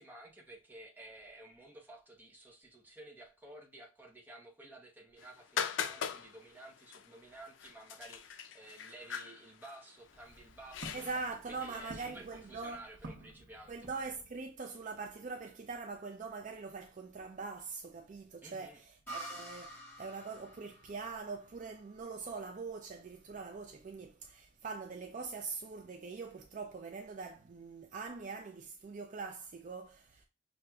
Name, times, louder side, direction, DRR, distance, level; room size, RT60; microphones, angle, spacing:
voice 1, 0.0-11.1 11.5-13.7 18.4-18.8, right 1 dB, 10° right, 0.8 m, -53 dB
sound 1, 5.2-12.5, left 7 dB, 85° left, 0.4 m, -42 dB
Walk footsteps, 10.0-14.5, right 1 dB, 85° right, 1.0 m, -52 dB
voice 2, 10.9-12.8 13.7-30.2, right 4 dB, 45° right, 0.4 m, -43 dB
sound 2, 19.1-22.6, right 2 dB, 10° left, 2.0 m, -48 dB
6.0 x 2.5 x 2.3 m
head